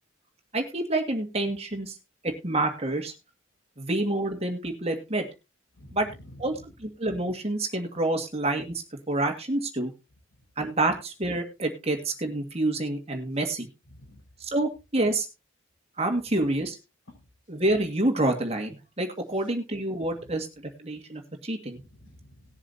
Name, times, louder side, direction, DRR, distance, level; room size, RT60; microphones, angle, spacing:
voice 1, 0.5-1.9 2.2-3.1 3.8-5.3 5.9-6.1 6.4-6.5 6.8-8.7 9.1-9.9 10.6-13.7 14.4-15.3 16.0-16.8 17.5-21.8, right 2 dB, 30° right, 4 dB, 1.9 m, -28 dB
voice 2, 5.8-6.7 13.9-14.2 17.1-17.2 20.1-20.2 21.7-22.5, left 1 dB, 90° left, 1 dB, 5.5 m, -49 dB
19.0 x 7.3 x 2.8 m, 0.27 s
head